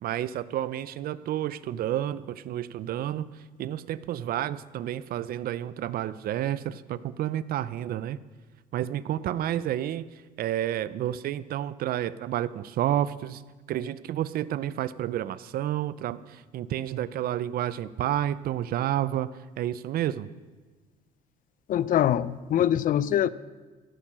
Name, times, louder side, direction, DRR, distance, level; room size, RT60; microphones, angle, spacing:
voice 1, 0.0-3.3 3.6-8.2 8.7-10.1 10.4-13.4 13.7-19.3 19.6-20.3, right 12 dB, 60° right, 17 dB, 0.6 m, -30 dB
voice 2, 21.7-23.3, left 10 dB, 55° left, 18 dB, 0.5 m, -23 dB
15.5 x 8.7 x 6.2 m, 1.3 s
cardioid pair, 110°, 17 cm